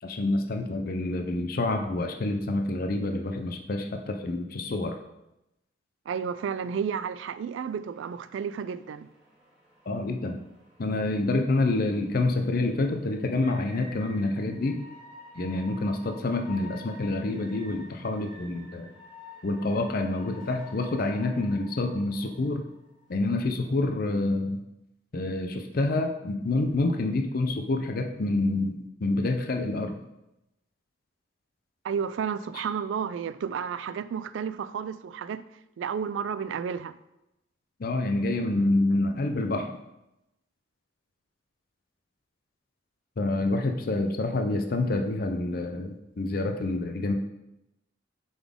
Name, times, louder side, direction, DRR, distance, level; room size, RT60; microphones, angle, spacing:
voice 1, 0.0-4.9 9.9-10.4 10.8-14.8 15.3-18.9 19.4-22.7 23.1-24.6 25.1-30.0 37.8-39.7 43.2-47.1, left 2 dB, 50° left, 0.5 m, -27 dB
voice 2, 6.1-9.1 10.9-11.1 31.8-35.4 35.8-36.9, right 7 dB, 75° right, 0.3 m, -32 dB
sound 1, 7.8-23.7, left 2 dB, 5° right, 2.4 m, -51 dB
7.0 x 4.0 x 3.6 m
head